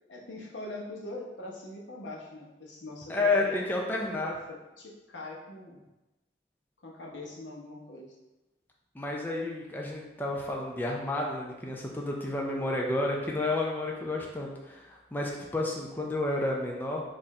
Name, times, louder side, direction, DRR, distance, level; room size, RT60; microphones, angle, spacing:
voice 1, 0.1-3.6 4.2-5.8 6.8-8.2, left 2 dB, 90° left, -2 dB, 0.9 m, -42 dB
voice 2, 3.1-4.3 8.9-17.0, left 2 dB, 10° left, -2 dB, 0.4 m, -31 dB
4.2 x 2.5 x 4.1 m, 1.0 s
head